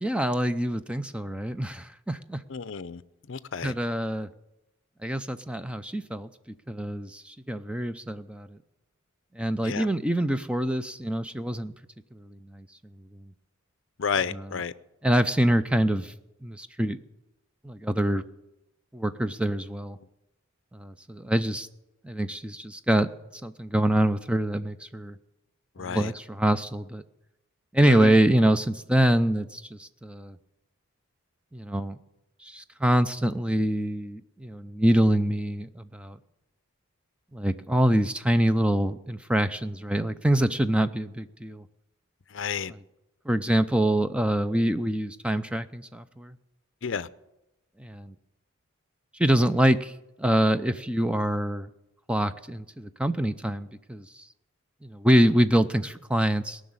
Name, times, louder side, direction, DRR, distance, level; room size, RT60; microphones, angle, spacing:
voice 1, 0.0-2.4 3.6-4.3 5.0-8.6 9.3-11.7 12.1-12.7 14.3-14.4 15.0-16.1 16.4-17.0 17.6-18.2 18.9-20.0 20.7-21.7 22.0-23.1 23.4-25.2 25.8-27.0 27.7-30.4 31.5-32.0 32.4-36.2 37.3-41.6 43.3-46.3 47.8-48.1 49.2-49.9 50.2-51.7 52.1-54.2 54.8-56.6, right 1 dB, 5° right, 0.5 m, -25 dB
voice 2, 2.5-3.0 3.3-3.7 9.6-9.9 14.0-14.7 25.8-26.1 27.9-28.1 42.3-42.7 46.8-47.1, left 6 dB, 60° left, 0.6 m, -31 dB
18.0 x 6.4 x 9.5 m
head